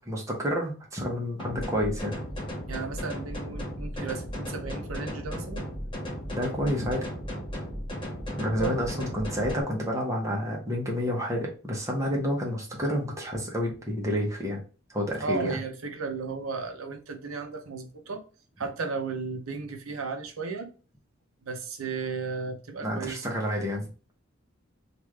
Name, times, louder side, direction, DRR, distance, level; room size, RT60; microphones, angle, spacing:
voice 1, 0.1-2.2 6.3-7.0 8.4-14.6 14.9-15.6 22.8-24.1, equal, 15° right, 0.9 m, -29 dB
sound 1, 1.4-9.6, equal, 25° left, 0.9 m, -35 dB
voice 2, 2.7-5.6 8.6-8.8 15.2-18.2 18.6-20.7 21.4-23.3, right 4 dB, 90° right, 0.7 m, -34 dB
3.2 x 2.5 x 3.2 m
head